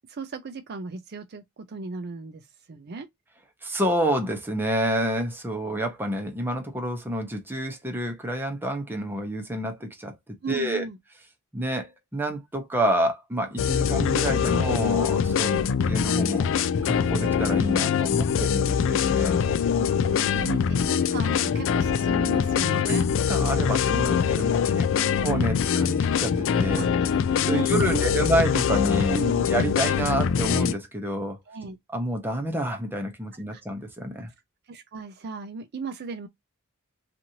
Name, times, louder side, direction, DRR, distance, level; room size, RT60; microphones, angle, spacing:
voice 1, 0.1-3.1 10.4-11.0 15.4-15.6 18.3-18.4 19.5-19.6 20.0-23.1 24.9-25.1 26.8-28.1 29.1-29.5 31.5-31.8 33.5-33.6 34.7-36.3, right 4 dB, 50° right, 0.5 m, -36 dB
voice 2, 3.6-10.2 10.5-10.9 11.5-15.5 15.9-16.5 16.8-19.9 22.9-23.0 23.3-24.9 25.2-26.9 27.5-29.2 29.5-31.4 31.9-34.3, right 1 dB, 10° right, 0.7 m, -28 dB
George Benson, 13.6-30.7, left 7 dB, 60° left, 0.3 m, -23 dB
2.9 x 2.5 x 2.6 m
head